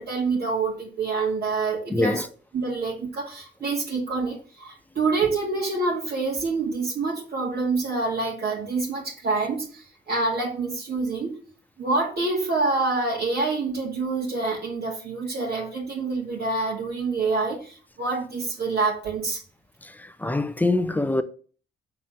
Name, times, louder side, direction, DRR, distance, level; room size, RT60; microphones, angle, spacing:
voice 1, 0.0-2.2 2.5-11.4 11.8-19.4, right 3 dB, 55° right, 2.1 m, -27 dB
voice 2, 1.9-2.3 20.2-21.2, left 2 dB, 10° left, 0.6 m, -23 dB
5.9 x 4.1 x 6.3 m
cardioid pair, 90°, 20 cm